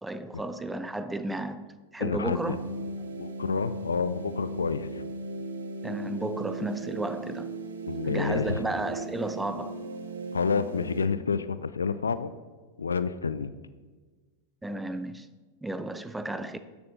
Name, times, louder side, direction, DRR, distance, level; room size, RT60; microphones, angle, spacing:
voice 1, 0.0-2.6 5.8-7.5 8.0-9.8 14.6-15.3 15.6-16.6, right 1 dB, 5° right, 0.4 m, -33 dB
voice 2, 2.0-2.6 3.1-5.0 7.9-8.6 10.3-12.3 12.8-13.5, left 5 dB, 75° left, 0.3 m, -29 dB
sound 1, 2.3-11.1, right 2 dB, 70° right, 0.7 m, -37 dB
13.5 x 6.7 x 2.7 m
figure-of-eight pair, 90°, 0 cm